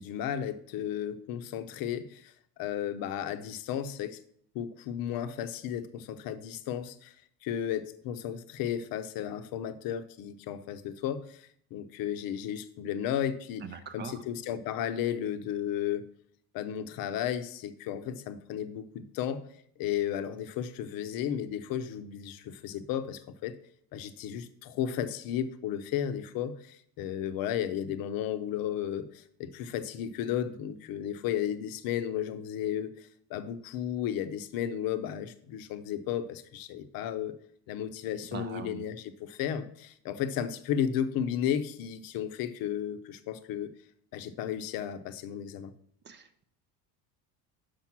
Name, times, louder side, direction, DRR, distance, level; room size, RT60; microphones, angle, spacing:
voice 1, 0.0-2.3 2.6-4.2 4.5-7.1 7.4-16.0 16.5-19.4 19.8-23.5 23.9-37.4 37.7-43.7 44.1-45.7, left 9 dB, 50° left, 11 dB, 0.7 m, -34 dB
voice 2, 38.3-38.8 46.1-46.4, right 6 dB, 25° right, 10 dB, 0.4 m, -41 dB
5.9 x 5.1 x 5.9 m, 0.65 s
cardioid pair, 135°, 44 cm